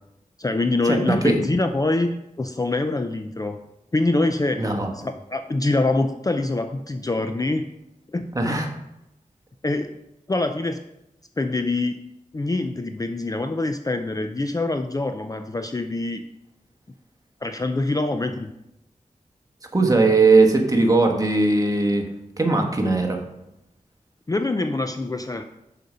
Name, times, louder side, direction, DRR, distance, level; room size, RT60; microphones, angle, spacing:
voice 1, 0.4-3.6 3.9-7.7 8.1-8.3 9.6-9.9 10.3-10.8 11.4-12.0 12.3-16.2 17.4-18.5 24.3-25.4, left 2 dB, 25° left, 7 dB, 0.4 m, -25 dB
voice 2, 4.6-4.9 8.3-8.7 19.7-22.0 22.4-23.2, right 3 dB, 25° right, 2 dB, 1.2 m, -19 dB
6.5 x 5.1 x 5.5 m, 0.88 s
wide cardioid pair, 75°, 14 cm